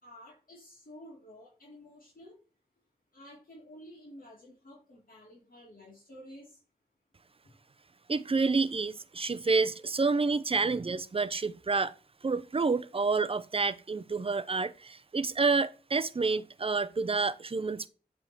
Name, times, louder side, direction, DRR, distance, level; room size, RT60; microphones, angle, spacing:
voice 1, 0.0-2.4 3.1-6.6, equal, 60° left, 2.3 m, -51 dB
voice 2, 8.1-11.9 12.2-17.9, right 4 dB, 35° right, 0.5 m, -29 dB
7.8 x 3.6 x 4.5 m
wide cardioid pair, 70°, 17 cm